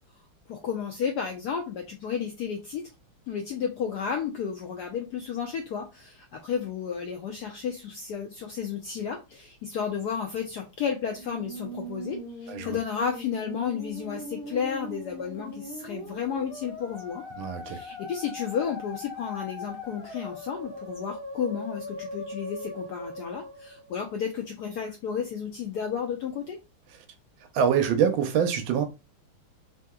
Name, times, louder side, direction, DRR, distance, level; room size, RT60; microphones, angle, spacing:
voice 1, 0.5-2.8 3.3-17.2 17.6-26.6, left 7 dB, 75° left, 0.9 m, -32 dB
Musical instrument, 11.0-24.4, left 1 dB, 35° right, 1.0 m, -40 dB
voice 2, 12.5-12.8 17.4-17.8 27.5-28.8, right 8 dB, 80° right, 1.3 m, -24 dB
3.4 x 2.8 x 2.2 m
omnidirectional pair, 2.2 m